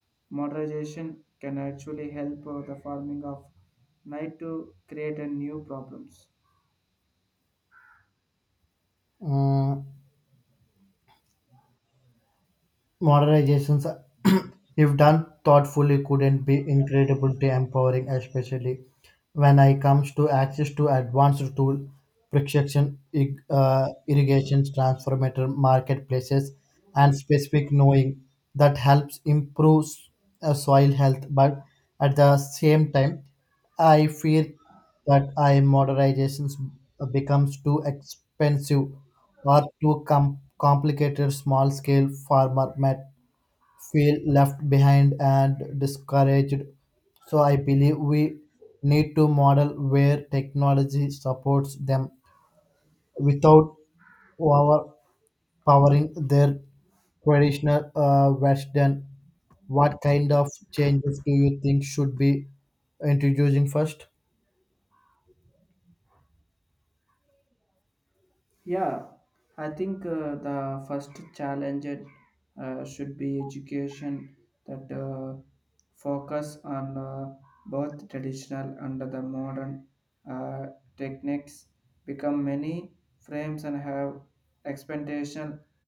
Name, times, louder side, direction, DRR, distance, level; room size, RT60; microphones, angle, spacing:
voice 1, 0.3-3.5 4.0-6.3 7.7-8.0 39.4-39.5 43.7-43.8 54.1-54.3 59.6-59.8 60.8-61.0 68.7-69.2 69.6-72.3 72.6-74.3 74.7-75.4 76.0-79.9 80.2-81.6 82.1-82.9 83.3-84.2 84.6-85.6, right 1 dB, 15° right, 4.6 m, -33 dB
voice 2, 9.2-9.9 13.0-14.0 14.2-14.5 14.8-18.8 19.3-21.9 22.3-26.5 26.9-28.2 28.5-30.0 30.4-31.6 32.0-33.2 33.8-34.5 35.1-36.7 37.0-38.1 38.4-39.0 39.4-43.1 43.9-46.7 47.3-48.4 48.8-52.1 53.2-53.7 54.4-54.9 55.7-56.6 57.3-59.1 59.7-62.5 63.0-64.0, left 1 dB, 15° left, 1.1 m, -21 dB
wide cardioid pair, 65°, 0 cm